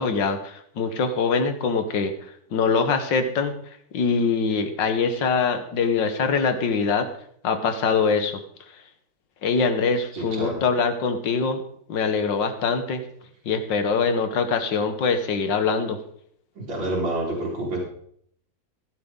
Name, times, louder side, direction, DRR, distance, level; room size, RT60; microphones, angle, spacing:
voice 1, 0.0-2.1 2.5-3.6 3.9-7.1 7.4-8.4 9.4-11.6 11.9-13.0 13.5-16.0, left 5 dB, 70° left, 8 dB, 1.9 m, -23 dB
voice 2, 10.1-10.6 16.6-17.8, right 1 dB, 80° right, -6 dB, 3.8 m, -28 dB
15.5 x 11.0 x 3.9 m, 0.66 s
omnidirectional pair, 2.1 m